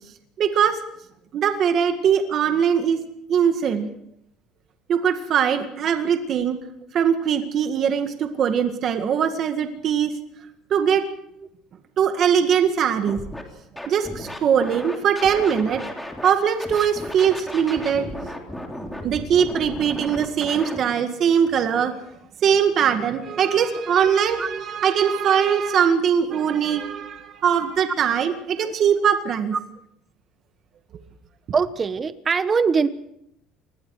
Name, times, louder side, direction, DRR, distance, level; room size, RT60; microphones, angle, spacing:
voice 1, 0.4-0.8 1.3-3.0 3.3-3.9 4.9-6.6 6.9-10.1 10.7-11.0 12.0-13.2 13.9-15.8 16.2-18.3 19.0-21.9 22.4-29.5, right 8 dB, 45° right, 6 dB, 1.9 m, -21 dB
Scratching (performance technique), 13.1-13.4 13.8-16.3 16.6-20.8, left 1 dB, 5° left, 3.5 m, -34 dB
voice 2, 24.4-24.7 25.8-25.9 28.6-28.7 31.5-32.9, right 5 dB, 25° right, 12 dB, 1.2 m, -23 dB
28.0 x 21.0 x 4.9 m, 0.75 s
cardioid pair, 145°, 0 cm